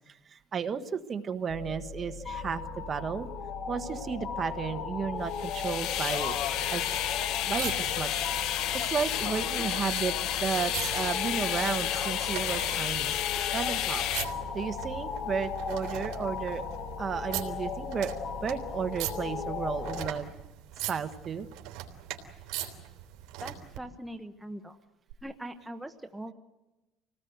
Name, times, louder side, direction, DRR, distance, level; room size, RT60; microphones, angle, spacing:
voice 1, 0.1-3.3 3.7-6.4 6.7-6.8 7.4-13.1 13.5-14.0 14.5-16.6 17.0-18.1 18.4-20.3 20.9-21.5, right 6 dB, 30° right, 9 dB, 1.3 m, -33 dB
sound 1, 1.5-20.1, left 5 dB, 45° left, 1.6 m, -37 dB
sound 2, 5.3-14.3, left 12 dB, 65° left, 1.0 m, -31 dB
sound 3, 5.6-23.8 25.1-25.2, right 13 dB, 75° right, 3.4 m, -42 dB
voice 2, 23.4-24.8 25.2-26.3, right 1 dB, 5° right, 6 dB, 0.9 m, -41 dB
27.0 x 18.5 x 8.0 m, 1.1 s
cardioid pair, 135°, 0 cm